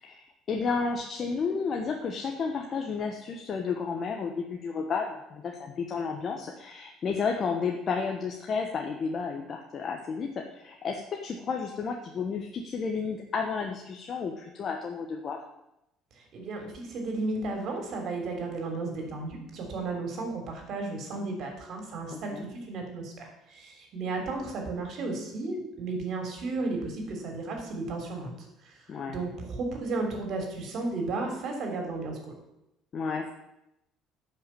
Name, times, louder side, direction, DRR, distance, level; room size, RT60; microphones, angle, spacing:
voice 1, 0.0-15.4 22.1-22.4 28.9-29.2 32.9-33.3, left 5 dB, 40° left, 2 dB, 1.1 m, -32 dB
voice 2, 16.2-28.3 28.6-28.7 29.1-32.2, right 3 dB, 55° right, 3 dB, 3.3 m, -34 dB
10.5 x 5.8 x 7.6 m, 0.86 s
cardioid pair, 120°, 0 cm